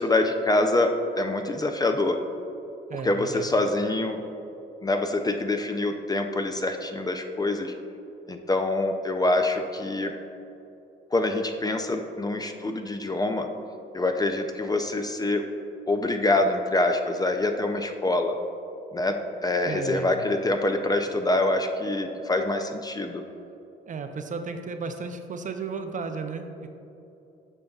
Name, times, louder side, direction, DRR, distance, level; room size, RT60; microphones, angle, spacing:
voice 1, 0.0-2.2 2.9-4.2 4.8-7.7 8.3-10.1 11.1-13.5 13.9-15.4 15.9-18.3 18.9-19.2 19.4-23.2, left 2 dB, 20° left, 5 dB, 0.4 m, -25 dB
voice 2, 2.9-3.5 19.7-20.3 23.9-26.7, right 4 dB, 40° right, 6 dB, 0.5 m, -34 dB
8.8 x 5.3 x 2.3 m, 2.8 s
cardioid pair, 90°, 20 cm